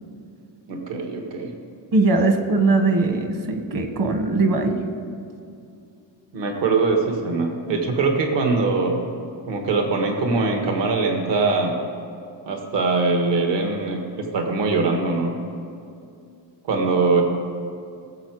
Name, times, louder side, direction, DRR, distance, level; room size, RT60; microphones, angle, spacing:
voice 1, 0.7-1.5 6.3-9.0 9.5-11.7 12.4-15.3 16.7-17.2, right 3 dB, 65° right, 2 dB, 1.7 m, -22 dB
voice 2, 1.9-4.8, right 3 dB, 45° right, 6 dB, 1.4 m, -20 dB
18.5 x 7.6 x 4.8 m, 2.5 s
cardioid pair, 145°, 46 cm